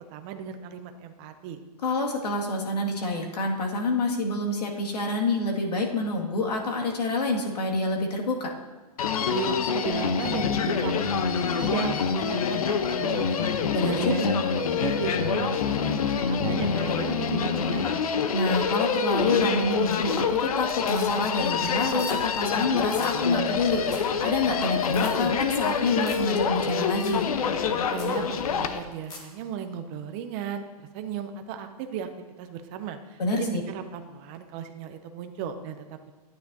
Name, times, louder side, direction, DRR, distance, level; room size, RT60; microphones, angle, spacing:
voice 1, 0.1-1.6 9.3-13.5 13.8-14.2 14.8-18.0 27.9-30.6 30.9-32.1 32.4-36.1, right 8 dB, 15° right, 8 dB, 0.3 m, -35 dB
voice 2, 1.8-8.5 13.7-14.3 18.3-27.3 33.2-33.6, left 2 dB, 90° left, 0 dB, 1.9 m, -27 dB
Human voice, 9.0-28.8, left 6 dB, 65° left, 0.7 m, -26 dB
sound 1, 19.8-20.2 20.5-21.4 21.7-22.2 22.5-22.6 22.8-23.1 23.5-23.6 23.8-24.1 24.4-24.5 24.9-25.1 26.0-26.3 26.6-26.7 27.0-27.2 27.6-27.7 27.9-28.2 28.8-29.3 31.5-31.6, left 3 dB, 20° left, 1.1 m, -45 dB
12.5 x 9.4 x 2.6 m, 1.3 s
hypercardioid pair, 165°, 20 cm